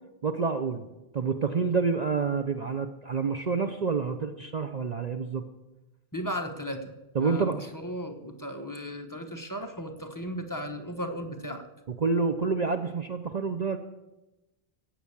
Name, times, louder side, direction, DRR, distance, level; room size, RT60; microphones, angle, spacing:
voice 1, 0.2-0.8 1.1-5.4 7.1-7.6 12.0-13.8, right 5 dB, 45° right, 7 dB, 0.7 m, -28 dB
voice 2, 6.1-6.9 7.2-11.7, equal, 20° left, 4 dB, 1.1 m, -36 dB
15.0 x 8.7 x 7.2 m, 1.0 s
omnidirectional pair, 1.2 m